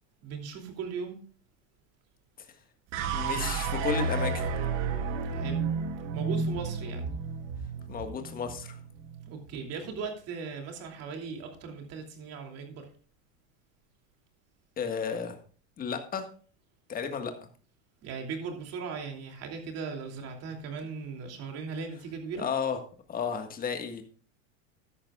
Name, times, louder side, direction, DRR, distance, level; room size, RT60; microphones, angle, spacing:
voice 1, 0.2-1.2 5.3-5.7 6.1-7.1 9.3-12.9 18.0-22.5, right 5 dB, 40° right, 3 dB, 2.8 m, -38 dB
sound 1, 2.9-9.3, right 4 dB, 75° right, 2.1 m, -31 dB
voice 2, 3.1-4.4 7.9-8.8 14.8-15.4 15.8-16.3 16.9-17.3 22.3-22.8 23.1-24.0, left 6 dB, 25° left, 6 dB, 1.6 m, -32 dB
13.5 x 11.5 x 2.4 m, 0.41 s
supercardioid pair, 145°, 37 cm